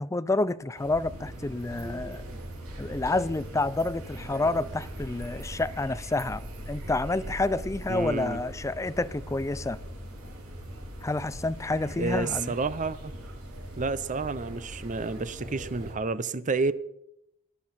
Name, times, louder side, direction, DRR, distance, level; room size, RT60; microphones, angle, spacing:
voice 1, 0.0-2.2 2.8-9.8 11.0-12.5, left 2 dB, 15° left, 0.4 m, -29 dB
sound 1, 0.7-15.9, equal, 80° right, 5.2 m, -40 dB
voice 2, 7.9-8.4 12.0-13.1 13.8-16.7, right 3 dB, 35° right, 0.7 m, -30 dB
18.0 x 10.5 x 4.3 m
head